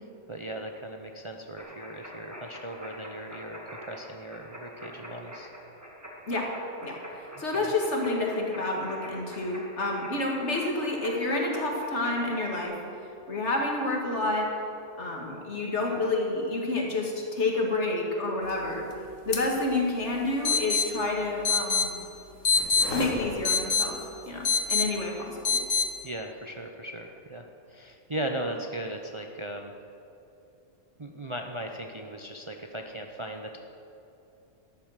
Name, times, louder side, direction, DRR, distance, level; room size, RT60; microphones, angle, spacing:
voice 1, 0.3-5.5 7.3-7.7 26.0-29.7 31.0-33.6, right 1 dB, 30° right, 3 dB, 0.6 m, -38 dB
sound 1, 1.6-12.6, equal, 10° right, 2.1 m, -45 dB
voice 2, 7.4-12.8 13.3-14.5 15.0-18.9 19.3-21.9 22.9-24.0 24.3-25.6, left 2 dB, 60° left, 0 dB, 2.3 m, -29 dB
sound 2, 19.3-19.4 19.7-19.8 20.5-20.9 21.5-21.9 22.5-23.9 24.5-24.9 25.5-25.9, left 5 dB, 85° left, 1.9 m, -24 dB
13.5 x 10.5 x 6.5 m, 2.9 s
omnidirectional pair, 1.3 m